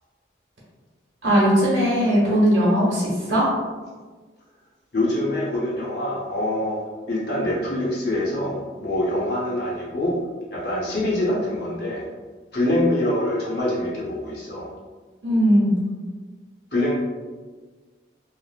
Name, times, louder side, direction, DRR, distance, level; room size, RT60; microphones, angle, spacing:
voice 1, 1.2-3.5 15.2-15.8, equal, 80° right, -7 dB, 1.0 m, -19 dB
voice 2, 4.9-6.8 7.1-10.2 10.5-12.0 12.5-14.7 16.7-17.0, left 1 dB, 60° left, -6 dB, 0.7 m, -24 dB
3.1 x 2.0 x 2.4 m, 1.4 s
head